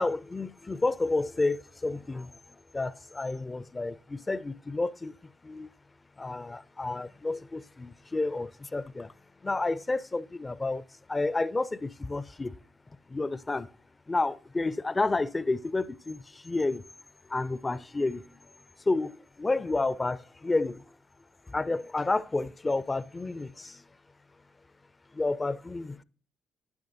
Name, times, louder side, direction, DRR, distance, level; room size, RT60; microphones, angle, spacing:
voice 1, 0.0-2.4 2.7-5.2 5.4-5.7 6.2-9.1 9.4-10.8 11.1-12.6 13.1-13.7 14.1-16.8 17.3-18.4 18.9-20.8 21.5-23.8 25.1-26.0, left 3 dB, 25° left, 0.4 m, -30 dB
10.5 x 9.9 x 2.6 m
hypercardioid pair, 55°, 0 cm